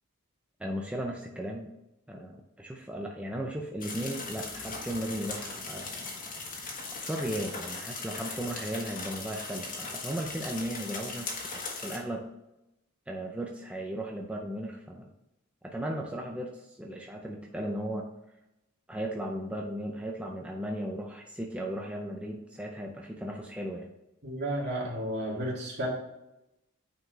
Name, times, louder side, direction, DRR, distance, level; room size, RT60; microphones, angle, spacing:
voice 1, 0.6-1.7 2.1-6.2 6.9-12.2 13.1-15.1 15.6-18.1 18.9-23.9, right 1 dB, 5° right, 1 dB, 0.5 m, -36 dB
sound 1, 3.8-12.0, left 3 dB, 40° left, 1.5 m, -39 dB
voice 2, 24.2-25.9, right 1 dB, 55° right, -4 dB, 2.6 m, -32 dB
9.4 x 4.6 x 3.3 m, 0.91 s
head